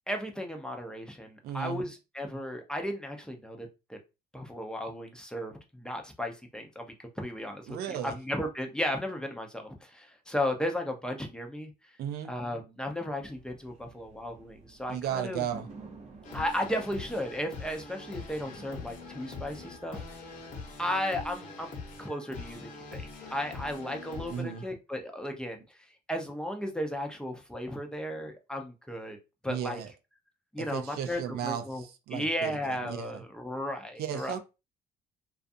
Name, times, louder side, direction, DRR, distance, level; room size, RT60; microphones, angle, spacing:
voice 1, 0.1-4.0 4.3-6.9 7.2-11.7 12.3-15.4 16.3-20.2 20.8-23.0 23.3-29.2 29.4-29.8 30.5-31.8 32.1-34.3, left 1 dB, 5° left, 0.5 m, -35 dB
voice 2, 1.4-1.8 7.7-8.2 12.0-12.3 14.9-15.7 24.3-24.6 29.5-29.9 30.6-33.2 34.0-34.4, right 9 dB, 70° right, 0.4 m, -35 dB
sound 1, 13.2-20.6, right 4 dB, 40° right, 0.8 m, -52 dB
sound 2, 16.2-24.7, left 4 dB, 50° left, 1.0 m, -43 dB
2.5 x 2.4 x 2.5 m
cardioid pair, 110°, 17 cm